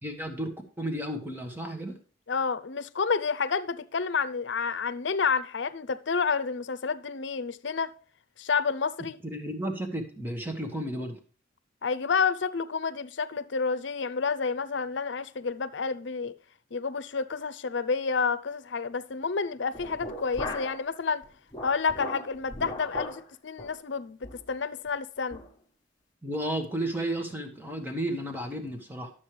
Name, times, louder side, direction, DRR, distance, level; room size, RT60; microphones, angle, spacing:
voice 1, 0.0-2.0 9.2-11.2 26.2-29.1, right 1 dB, 10° right, 1.4 m, -33 dB
voice 2, 2.3-7.9 8.4-9.2 11.8-16.3 16.7-21.2 21.6-24.2 24.5-25.4, left 5 dB, 70° left, 0.7 m, -29 dB
sound 1, 19.7-20.9 21.2-23.2 23.6-23.8 24.2-24.5 24.9-25.0 25.3-25.5, left 1 dB, 20° left, 1.4 m, -38 dB
12.0 x 7.4 x 3.2 m
head